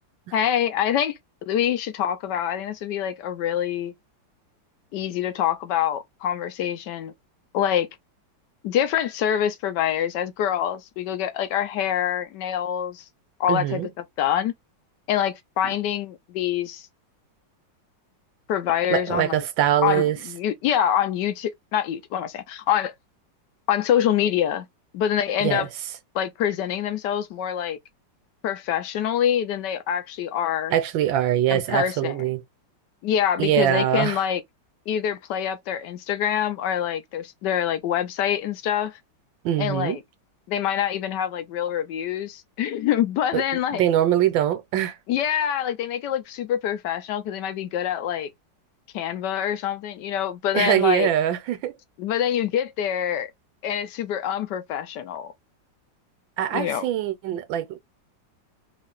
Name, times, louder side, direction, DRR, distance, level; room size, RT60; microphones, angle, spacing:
voice 1, 0.3-1.2 1.5-3.9 4.9-7.1 7.5-7.9 8.6-13.0 13.4-13.8 14.2-14.5 15.1-16.9 18.5-19.4 19.8-22.9 23.7-24.7 24.9-25.7 26.1-27.8 28.4-30.7 31.5-32.2 33.0-34.4 34.9-39.0 39.6-40.0 40.5-43.8 45.1-48.3 48.9-51.1 52.0-53.3 53.6-55.3 56.5-56.9, left 10 dB, 70° left, 1.2 m, -25 dB
voice 2, 13.5-13.9 18.9-20.2 25.4-25.7 30.7-32.4 33.4-34.2 39.4-40.0 43.3-44.9 50.5-51.7 56.4-57.8, right 11 dB, 90° right, 1.4 m, -23 dB
3.6 x 2.4 x 3.6 m
omnidirectional pair, 2.0 m